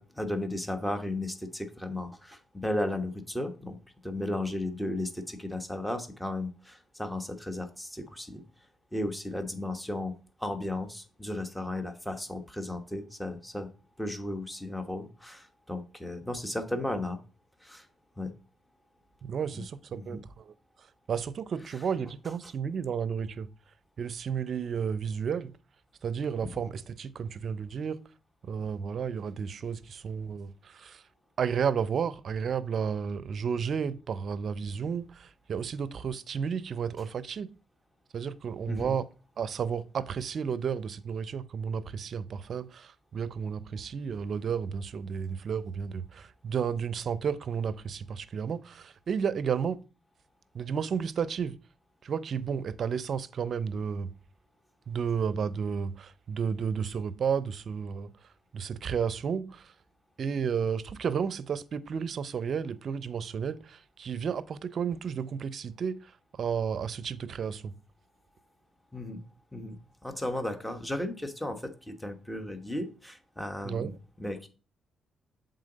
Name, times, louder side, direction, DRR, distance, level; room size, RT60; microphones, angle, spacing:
voice 1, 0.0-3.8 4.0-8.4 8.9-10.1 10.4-13.7 14.0-17.2 17.6-17.9 18.2-18.3 19.5-19.6 19.9-20.2 38.7-38.9 68.9-69.2 69.5-74.5, left 1 dB, 10° left, 1.1 m, -35 dB
voice 2, 19.2-20.5 21.1-23.5 24.0-25.5 26.0-28.0 28.4-31.0 31.4-37.5 38.1-39.1 39.4-49.8 50.5-51.6 52.0-54.1 54.9-58.1 58.5-59.7 60.2-67.7 73.6-74.0, right 7 dB, 60° right, 0.5 m, -32 dB
7.4 x 3.9 x 3.9 m
supercardioid pair, 65°, 0 cm